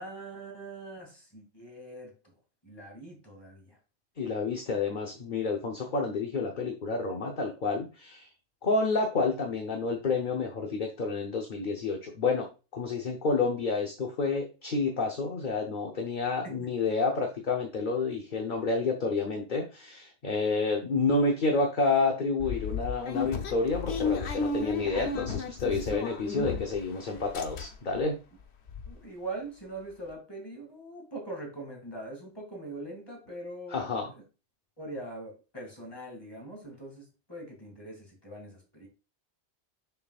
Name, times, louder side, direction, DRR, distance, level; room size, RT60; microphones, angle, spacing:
voice 1, 0.0-2.3 2.6-3.8 16.4-16.7 28.8-33.8 34.8-38.9, right 2 dB, 20° left, 2.4 m, -42 dB
voice 2, 4.2-8.3 8.6-12.5 12.7-28.2 33.7-34.1, left 3 dB, 50° left, 1.0 m, -29 dB
sound 1, 22.4-26.9 27.2-28.0 28.4-28.5 28.7-28.9, left 4 dB, 75° left, 1.1 m, -33 dB
6.8 x 5.9 x 2.4 m
omnidirectional pair, 1.1 m